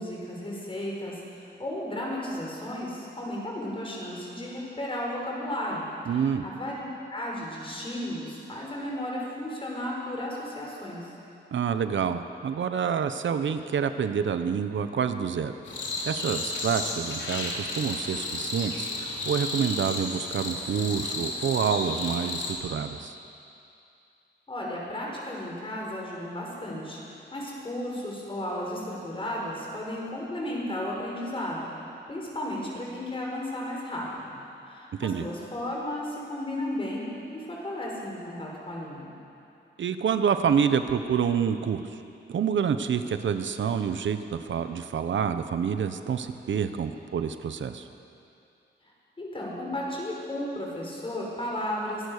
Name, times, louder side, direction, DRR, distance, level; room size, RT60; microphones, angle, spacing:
voice 1, 0.0-6.8 7.1-11.1 24.5-31.7 32.1-34.4 34.6-39.1 48.8-48.9 49.2-52.1, left 1 dB, 30° left, -3 dB, 5.5 m, -34 dB
voice 2, 6.1-6.4 11.5-15.5 16.0-23.1 35.0-35.3 39.8-42.0 42.3-47.9, right 7 dB, 85° right, 9 dB, 1.0 m, -27 dB
sound 1, 15.6-22.5, left 2 dB, 80° left, 3.7 m, -33 dB
23.5 x 18.0 x 6.7 m, 2.7 s
wide cardioid pair, 150°, 19 cm